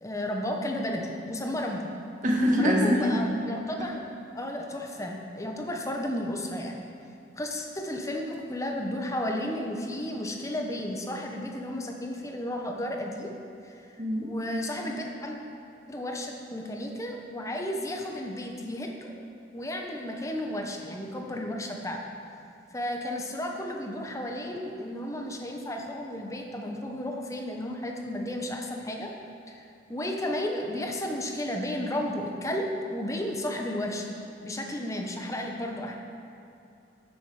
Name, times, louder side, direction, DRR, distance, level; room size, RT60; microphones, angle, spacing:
voice 1, 0.0-1.9 2.6-4.0 4.3-6.8 7.4-13.3 13.6-13.9 14.2-15.4 15.9-19.1 19.5-22.0 22.7-29.1 29.5-34.1 34.4-36.0, left 1 dB, 15° left, 1 dB, 0.9 m, -33 dB
voice 2, 2.2-3.3 14.0-14.3, equal, 40° right, -2 dB, 1.7 m, -23 dB
13.0 x 7.2 x 4.9 m, 2.6 s
head